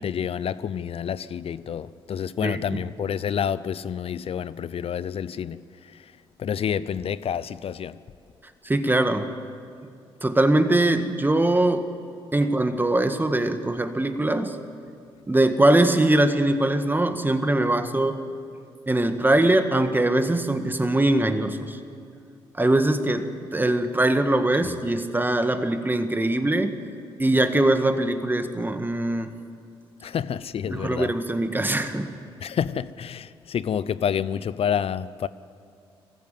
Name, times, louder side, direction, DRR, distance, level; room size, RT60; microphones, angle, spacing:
voice 1, 0.0-5.6 6.4-8.0 24.6-24.7 30.0-31.1 32.4-35.3, left 8 dB, 55° left, 0.7 m, -28 dB
voice 2, 2.4-2.8 8.6-9.3 10.2-11.9 12.3-14.6 15.3-18.2 18.9-21.8 22.5-26.8 27.2-29.3 30.7-32.3, right 1 dB, 15° right, 1.9 m, -22 dB
21.0 x 15.0 x 9.2 m
hypercardioid pair, 45°, 12 cm